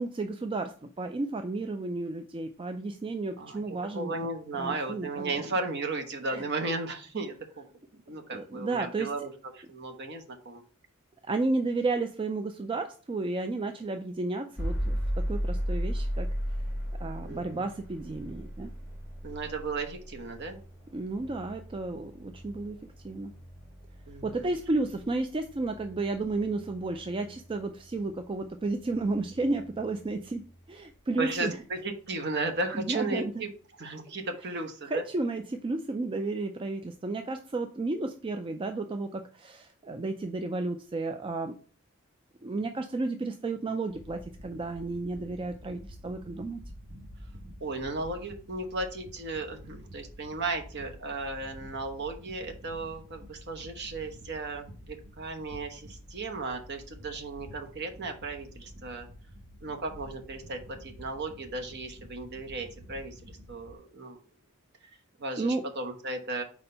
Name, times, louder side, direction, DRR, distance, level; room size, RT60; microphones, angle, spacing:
voice 1, 0.0-4.2 4.5-5.5 6.3-6.4 8.3-9.1 11.3-16.3 17.0-18.7 20.9-23.3 24.2-31.6 32.7-33.3 34.5-41.6 42.4-46.6 65.4-65.6, right 3 dB, 25° right, 7 dB, 0.3 m, -32 dB
voice 2, 3.4-7.7 7.9-10.6 17.2-17.6 19.2-20.6 24.1-24.5 31.2-33.5 33.8-35.0 47.6-59.1 59.6-64.2 65.2-66.4, right 3 dB, 50° right, 4 dB, 1.0 m, -35 dB
sound 1, 14.6-30.5, equal, 10° right, 2.8 m, -37 dB
sound 2, 43.9-63.7, equal, 70° right, 1.4 m, -49 dB
4.4 x 4.3 x 5.4 m, 0.40 s
head